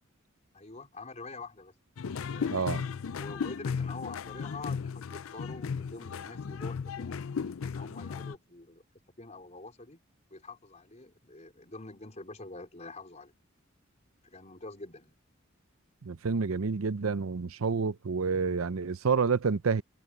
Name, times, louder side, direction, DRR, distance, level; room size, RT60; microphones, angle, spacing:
voice 1, 0.5-1.8 2.1-2.7 3.1-7.2 7.6-8.8 9.2-10.0 10.3-13.3 14.2-15.2, left 3 dB, 35° left, 4.5 m, -46 dB
sound 1, 2.0-8.3, left 6 dB, 80° left, 0.5 m, -35 dB
voice 2, 2.5-2.8 16.0-19.8, right 5 dB, 85° right, 0.6 m, -29 dB
head